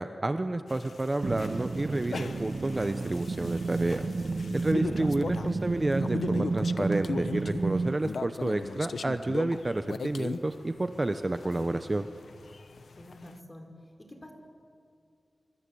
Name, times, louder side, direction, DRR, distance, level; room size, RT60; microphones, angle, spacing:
voice 1, 0.0-4.1 4.5-12.1, right 2 dB, 30° right, 9 dB, 0.9 m, -30 dB
sound 1, 0.7-13.3, left 4 dB, 80° left, 0.8 m, -39 dB
sound 2, 1.2-8.0, right 3 dB, 60° right, 1.1 m, -32 dB
voice 2, 12.9-13.7 14.0-14.3, left 1 dB, 20° left, 4 dB, 4.3 m, -48 dB
26.5 x 25.0 x 8.6 m, 2.4 s
wide cardioid pair, 105°, 0 cm